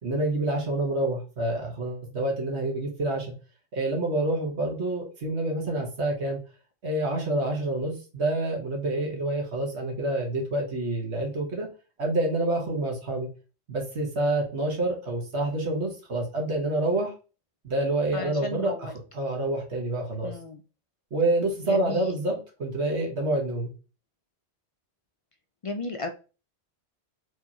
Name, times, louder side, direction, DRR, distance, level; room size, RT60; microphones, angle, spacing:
voice 1, 0.0-3.3 3.7-6.4 6.8-11.7 12.0-13.3 13.7-17.1 17.6-20.3 21.1-23.7, right 2 dB, 80° right, 1 dB, 1.7 m, -27 dB
voice 2, 18.1-18.9 20.2-20.6 21.6-22.2 25.6-26.1, left 3 dB, 65° left, 6 dB, 0.3 m, -34 dB
4.6 x 3.4 x 2.9 m, 0.33 s
omnidirectional pair, 1.1 m